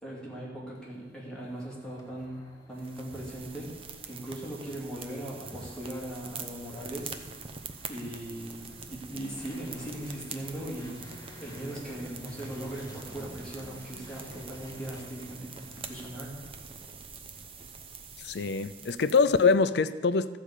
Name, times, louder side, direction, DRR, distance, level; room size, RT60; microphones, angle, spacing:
voice 1, 0.0-2.4 2.7-3.8 4.1-7.1 7.9-11.0 11.4-16.4, right 1 dB, 5° left, 2.5 m, -39 dB
sound 1, 0.7-16.1, left 1 dB, 20° left, 1.4 m, -52 dB
sound 2, 2.8-19.6, right 5 dB, 30° right, 0.7 m, -45 dB
voice 2, 18.2-20.4, left 4 dB, 65° left, 0.5 m, -24 dB
13.5 x 5.0 x 8.2 m
head